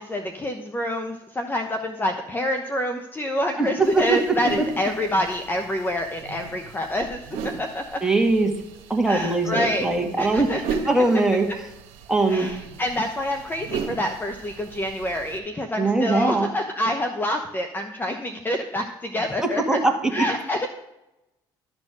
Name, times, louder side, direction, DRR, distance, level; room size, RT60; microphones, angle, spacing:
voice 1, 0.0-8.0 9.1-9.9 10.2-10.6 12.3-19.8 20.1-20.7, left 1 dB, 20° left, 5 dB, 0.9 m, -27 dB
voice 2, 3.6-4.6 8.0-8.5 8.9-10.5 10.9-11.5 12.1-12.5 15.8-16.5 19.4-20.2, right 2 dB, 5° right, 2 dB, 2.0 m, -21 dB
sound 1, 3.8-15.4, right 6 dB, 75° right, 1.3 m, -37 dB
12.0 x 4.3 x 6.2 m, 0.91 s
supercardioid pair, 80°, 10 cm